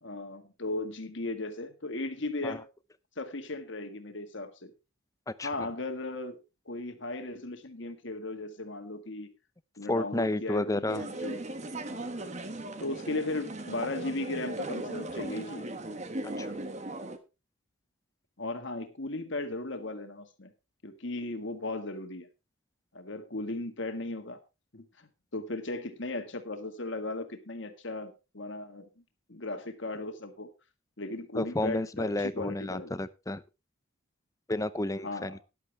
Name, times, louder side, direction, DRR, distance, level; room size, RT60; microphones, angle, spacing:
voice 1, 0.0-2.7 3.2-4.7 5.4-6.4 6.6-9.3 9.8-11.5 11.9-12.3 12.8-15.7 18.4-20.5 20.8-22.3 22.9-24.4 24.7-28.9 29.3-30.5 31.0-32.9 35.0-35.4, left 2 dB, 55° left, 1.8 m, -36 dB
voice 2, 9.9-11.0 16.2-16.5 31.3-33.4 34.5-35.4, left 1 dB, 15° left, 0.6 m, -31 dB
sound 1, 10.9-17.2, right 1 dB, 30° right, 1.2 m, -38 dB
13.5 x 11.0 x 3.4 m
head